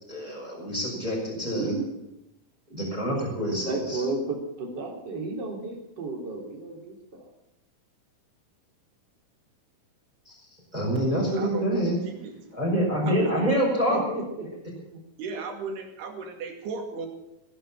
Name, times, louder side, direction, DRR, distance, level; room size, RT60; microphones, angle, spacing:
voice 1, 0.1-1.7 2.7-4.0 10.3-10.4 10.7-12.0 12.5-14.2, equal, 10° right, -3 dB, 5.5 m, -26 dB
voice 2, 1.4-1.9 3.4-7.3 13.9-14.5 14.9-15.0, right 3 dB, 30° right, 0 dB, 3.5 m, -33 dB
voice 3, 11.4-12.6 13.0-13.6 15.2-17.1, right 5 dB, 85° right, 3 dB, 4.4 m, -36 dB
17.0 x 11.0 x 7.4 m, 0.89 s
omnidirectional pair, 4.5 m